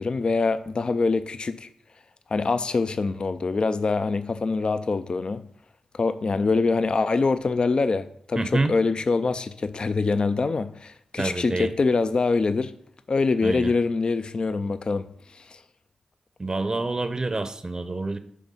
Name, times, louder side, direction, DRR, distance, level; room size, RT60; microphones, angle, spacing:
voice 1, 0.0-1.7 2.3-5.4 5.9-12.7 13.1-15.6, left 4 dB, 50° left, 0.4 m, -24 dB
voice 2, 8.4-8.7 11.2-11.7 13.4-13.7 16.4-18.2, right 2 dB, 35° right, 0.6 m, -27 dB
9.1 x 3.5 x 5.5 m
cardioid pair, 55°, 2 cm